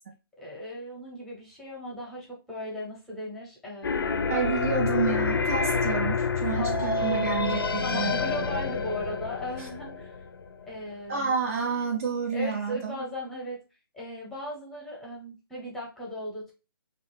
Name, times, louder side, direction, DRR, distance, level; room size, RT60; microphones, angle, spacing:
voice 1, 0.4-4.3 6.5-7.0 7.8-10.1 10.6-11.3 12.3-13.6 13.9-16.5, left 1 dB, ahead, 0.8 m, -37 dB
sound 1, 3.8-10.6, left 4 dB, 75° left, 0.4 m, -28 dB
voice 2, 4.3-8.2 9.6-9.7 11.1-13.0, right 6 dB, 35° right, 0.5 m, -29 dB
2.4 x 2.3 x 3.2 m
figure-of-eight pair, 145°, 12 cm